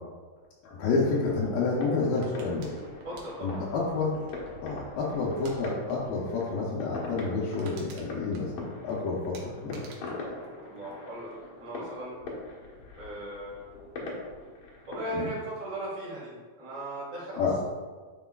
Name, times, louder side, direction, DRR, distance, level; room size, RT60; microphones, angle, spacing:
voice 1, 0.6-2.7 3.4-4.2 4.6-9.8 15.2-15.3 17.4-17.5, left 4 dB, 80° left, -6 dB, 2.6 m, -29 dB
sound 1, 1.0-15.2, left 2 dB, 60° left, 1.9 m, -42 dB
sound 2, 2.2-4.7 5.3-5.6 5.9-6.1 6.4-6.5 6.9-7.0 7.3-8.9 9.3-11.4 11.7-12.1, right 3 dB, 85° right, 2.8 m, -50 dB
voice 2, 3.0-3.6 10.6-11.3 11.6-12.2 13.0-13.6 14.9-17.6, right 1 dB, 55° right, -7 dB, 3.2 m, -37 dB
9.7 x 4.8 x 2.4 m, 1.4 s
omnidirectional pair, 4.0 m